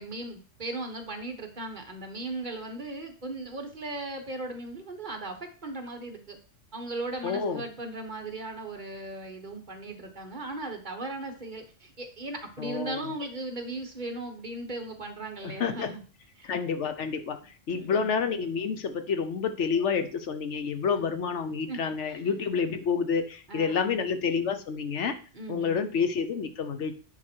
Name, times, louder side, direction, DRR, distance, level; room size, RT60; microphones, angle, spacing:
voice 1, 0.0-6.4 6.7-16.0 16.4-16.6 17.7-18.1 21.0-21.1 21.7-22.3 23.5-24.0 25.3-25.7, right 2 dB, 40° right, 5 dB, 1.4 m, -37 dB
voice 2, 7.2-7.6 12.6-13.0 15.4-15.9 16.4-17.4 17.7-25.1 25.5-27.0, left 6 dB, 70° left, 9 dB, 1.1 m, -29 dB
9.7 x 4.6 x 4.5 m, 0.39 s
omnidirectional pair, 1.3 m